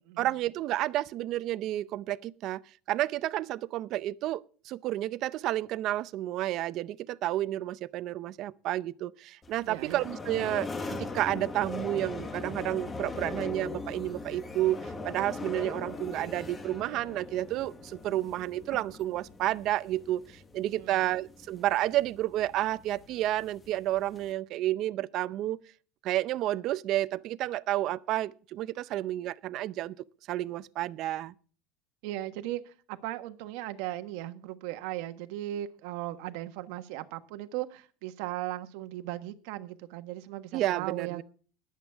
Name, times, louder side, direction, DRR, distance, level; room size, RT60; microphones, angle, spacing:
voice 1, 0.2-2.6 2.9-25.6 26.0-29.9 30.3-31.3 40.5-41.2, right 14 dB, 45° right, 0.5 m, -31 dB
sound 1, 9.4-24.3, left 3 dB, 15° left, 1.1 m, -40 dB
voice 2, 9.6-10.0 20.7-21.0 32.0-41.2, right 15 dB, 70° right, 1.3 m, -37 dB
21.0 x 8.1 x 3.5 m
cardioid pair, 155°, 0 cm